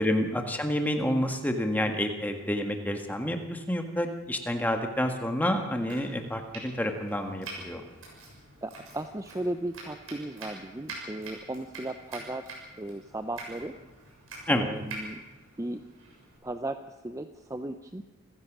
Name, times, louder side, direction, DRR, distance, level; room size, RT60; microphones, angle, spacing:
voice 1, 0.0-7.8 14.5-14.7, left 1 dB, 10° left, 4 dB, 1.6 m, -29 dB
Domestic sounds home sounds, 5.7-16.4, right 2 dB, 70° right, 7.0 m, -45 dB
voice 2, 8.6-13.7 14.5-15.2 15.6-15.8 16.4-18.0, right 1 dB, 15° right, 8 dB, 0.6 m, -36 dB
27.5 x 15.5 x 6.1 m, 1.1 s
head